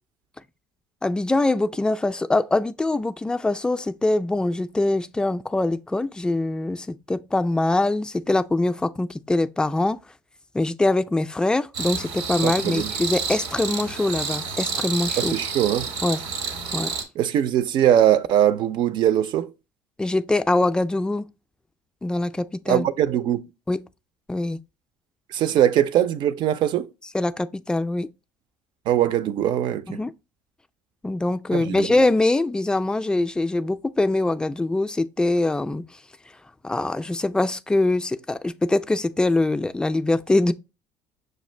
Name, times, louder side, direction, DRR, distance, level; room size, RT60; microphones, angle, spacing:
voice 1, 1.0-10.0 10.5-15.4 16.0-16.2 16.7-16.9 20.0-21.3 22.0-22.9 23.7-23.8 24.3-24.6 27.1-28.1 29.9-30.1 31.0-35.8 36.6-40.5, left 2 dB, 10° left, 0.3 m, -23 dB
sound 1, 11.7-17.0, right 5 dB, 85° right, 1.0 m, -29 dB
voice 2, 12.4-12.9 15.2-15.9 17.2-19.5 22.7-23.4 25.3-26.9 28.9-30.0 31.5-31.9, right 11 dB, 55° right, 0.4 m, -21 dB
6.3 x 2.4 x 3.2 m
supercardioid pair, 85°, 9 cm